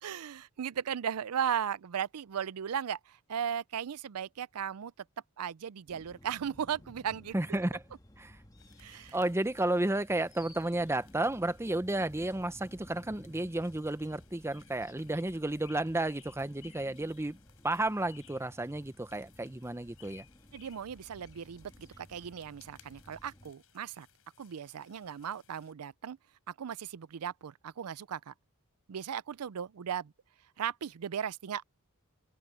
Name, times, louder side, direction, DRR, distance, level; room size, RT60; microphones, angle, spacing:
voice 1, 0.0-4.9 5.4-7.3 8.8-9.2 20.5-24.1 24.4-26.2 26.5-28.3 28.9-30.1 30.6-31.6, right 8 dB, 75° right, 0.5 m, -36 dB
sound 1, 5.9-23.5, left 1 dB, 15° left, 1.5 m, -56 dB
voice 2, 7.3-7.8 8.2-8.4 9.1-17.4 17.6-20.2, right 1 dB, 10° right, 0.7 m, -32 dB
sound 2, 8.6-25.7, left 10 dB, 65° left, 5.9 m, -62 dB
head